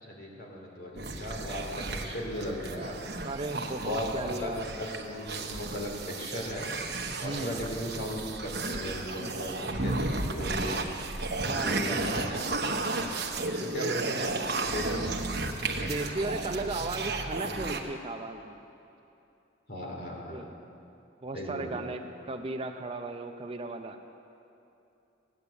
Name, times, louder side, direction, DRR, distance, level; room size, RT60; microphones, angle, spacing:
voice 1, 0.0-2.9 3.8-4.1 4.4-6.7 7.2-10.8 11.6-12.3 12.6-12.7 13.5-15.1 15.7-15.9 19.7-20.4 21.3-21.9, left 1 dB, 50° left, -1 dB, 2.9 m, -37 dB
sound 1, 1.0-17.8, right 3 dB, 55° right, 1.1 m, -33 dB
voice 2, 3.2-5.0 7.2-7.5 9.2-9.3 11.4-11.8 13.8-14.0 15.7-18.6 20.3-20.5 21.2-24.0, right 2 dB, 30° right, 5 dB, 0.6 m, -36 dB
16.0 x 10.0 x 8.2 m, 2.8 s
head